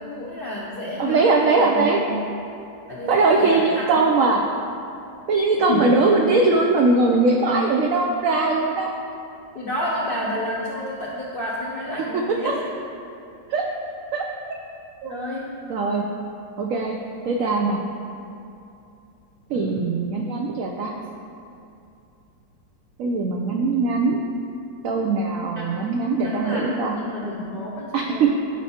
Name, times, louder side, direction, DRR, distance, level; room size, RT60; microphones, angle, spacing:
voice 1, 0.0-1.9 2.9-4.0 5.7-6.0 9.5-12.6 15.0-15.5 19.5-20.0 25.6-25.9 26.2-28.3, left 1 dB, 55° left, -6 dB, 0.6 m, -30 dB
voice 2, 1.0-2.1 3.1-4.4 5.3-8.9 13.5-13.6 14.1-14.2 15.0-15.1 15.7-16.0 16.6-16.9 17.3-17.8 19.5-20.9 23.0-24.2 24.8-26.9 27.9-28.3, right 3 dB, 85° right, 1 dB, 0.7 m, -20 dB
11.5 x 4.6 x 2.8 m, 2.6 s
omnidirectional pair, 2.0 m